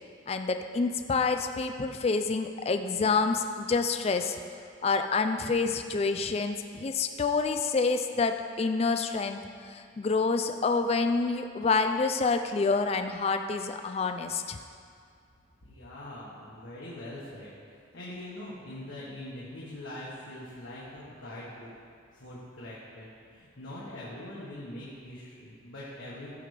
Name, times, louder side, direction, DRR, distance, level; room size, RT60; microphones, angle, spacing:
voice 1, 0.3-4.4 4.8-14.6, left 4 dB, 30° left, 7 dB, 0.3 m, -28 dB
voice 2, 15.6-21.7 22.1-26.3, left 1 dB, 75° left, -8 dB, 1.4 m, -43 dB
14.0 x 5.1 x 3.3 m, 2.2 s
head